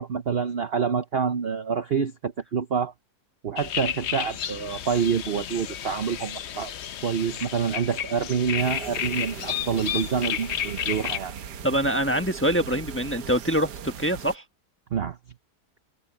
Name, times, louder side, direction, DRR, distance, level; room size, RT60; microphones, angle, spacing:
voice 1, 0.0-2.9 3.4-6.7 7.0-11.4 14.9-15.2, right 6 dB, 50° right, 0.8 m, -27 dB
sound 1, 3.6-11.2, left 10 dB, 55° left, 0.8 m, -32 dB
sound 2, 8.6-14.4, right 7 dB, 90° right, 1.7 m, -39 dB
voice 2, 11.6-14.4, equal, 10° left, 1.2 m, -24 dB
omnidirectional pair, 1.7 m